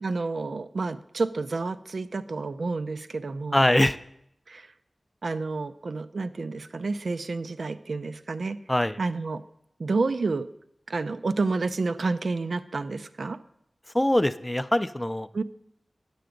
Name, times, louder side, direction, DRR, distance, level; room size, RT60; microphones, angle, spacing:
voice 1, 0.0-3.6 4.5-4.7 5.2-8.6 9.0-9.4 9.8-10.5 10.9-13.4 15.3-15.4, right 3 dB, 80° right, 12 dB, 0.4 m, -29 dB
voice 2, 3.5-4.0 8.7-9.0 13.9-15.3, left 1 dB, 15° left, 13 dB, 0.4 m, -22 dB
9.2 x 6.8 x 5.0 m, 0.75 s
wide cardioid pair, 65°, 0 cm